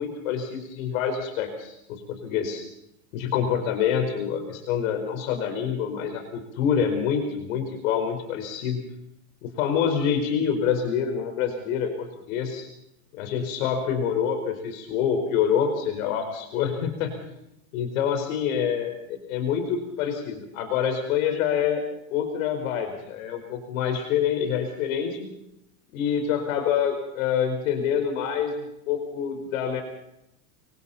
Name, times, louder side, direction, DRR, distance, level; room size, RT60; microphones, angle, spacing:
voice 1, 0.0-2.6 3.1-8.8 9.4-12.7 13.1-17.1 17.7-21.8 22.1-25.3 25.9-29.8, left 8 dB, 65° left, 5 dB, 4.7 m, -26 dB
28.0 x 24.5 x 4.3 m, 0.83 s
supercardioid pair, 170°, 43 cm